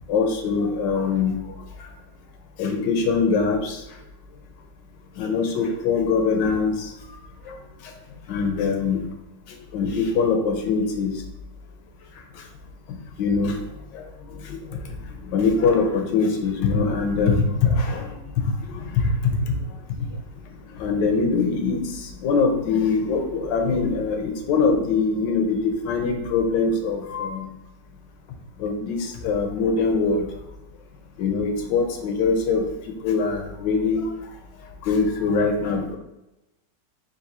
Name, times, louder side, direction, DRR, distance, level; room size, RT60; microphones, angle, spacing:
voice 1, 0.1-1.4 2.6-3.8 5.2-6.9 7.5-7.6 7.8-7.9 8.3-9.0 9.5-11.1 13.2-13.6 13.9-14.1 14.4-14.8 15.2-18.2 18.7-19.6 20.0-20.1 20.7-27.5 28.6-30.3 31.2-32.7 33.0-34.1 34.8-36.0, left 4 dB, 85° left, 4 dB, 1.3 m, -23 dB
3.9 x 2.6 x 4.1 m, 0.93 s
omnidirectional pair, 1.9 m